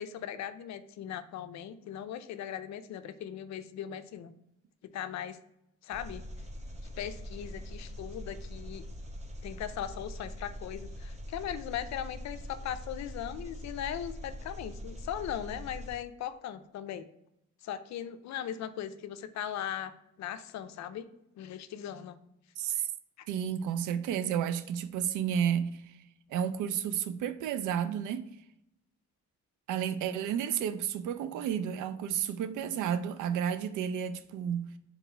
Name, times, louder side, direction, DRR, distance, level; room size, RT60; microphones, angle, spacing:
voice 1, 0.0-4.3 4.8-5.4 5.8-6.2 7.0-8.8 9.4-17.1 17.6-21.1 21.4-22.2, left 10 dB, 65° left, 0.5 m, -39 dB
Engine, 5.9-15.9, equal, 20° right, 0.8 m, -43 dB
voice 2, 22.6-22.9 23.3-25.9 26.3-28.3 29.7-34.7, right 9 dB, 80° right, 0.5 m, -31 dB
3.9 x 3.0 x 4.4 m
cardioid pair, 90°, 30 cm